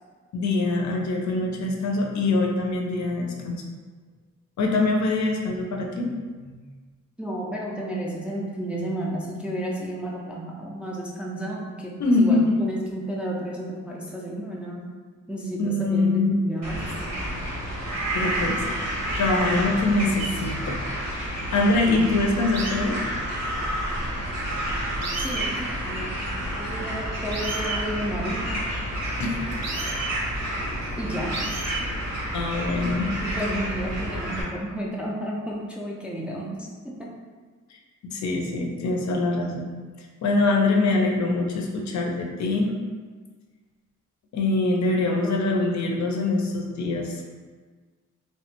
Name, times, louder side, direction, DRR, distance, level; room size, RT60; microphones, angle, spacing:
voice 1, 0.3-3.6 4.6-6.1 6.4-6.6 12.0-12.5 15.6-16.3 18.1-18.7 19.2-22.9 29.2-29.4 32.3-33.1 37.7-42.7 44.3-47.2, left 2 dB, 65° left, 1 dB, 0.5 m, -24 dB
voice 2, 7.2-14.9 15.3-16.8 25.2-28.6 31.0-31.4 33.2-37.1 45.1-45.7, right 1 dB, 5° right, -3 dB, 0.3 m, -32 dB
sound 1, 16.6-34.4, equal, 90° right, 1.0 m, -30 dB
sound 2, 20.2-20.3 22.5-22.8 24.5-24.6 25.0-25.5 27.3-27.8 29.5-30.1 31.3-31.8 32.7-33.1, right 4 dB, 60° right, 0.5 m, -32 dB
3.2 x 2.1 x 2.9 m, 1.5 s
wide cardioid pair, 125°, 30 cm